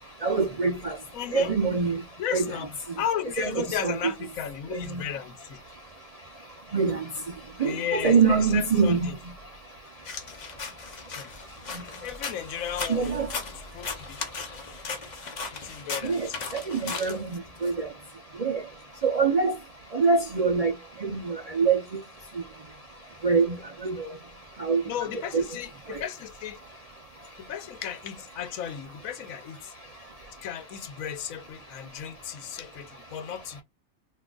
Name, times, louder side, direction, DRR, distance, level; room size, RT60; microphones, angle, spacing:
voice 1, 0.2-1.0 1.3-2.0 2.3-2.5 3.4-4.1 4.7-5.0 6.7-7.0 7.6-9.1 12.9-13.3 16.0-16.3 16.5-17.2 17.6-17.9 18.4-18.6 19.0-19.5 19.9-20.7 21.0-21.8 23.2-23.6 23.8-24.0 24.6-24.8 25.3-25.4, right 5 dB, 65° right, 0.3 m, -24 dB
voice 2, 1.1-1.5 2.2-2.7 3.0-5.6 7.6-9.2 11.2-11.3 12.0-13.2 13.6-14.2 15.6-16.5 17.1-17.2 24.9-26.6 27.4-29.7 30.4-33.6, left 9 dB, 85° left, 1.1 m, -34 dB
sound 1, 10.1-17.7, left 4 dB, 45° left, 0.6 m, -37 dB
3.6 x 2.7 x 2.3 m
omnidirectional pair, 1.4 m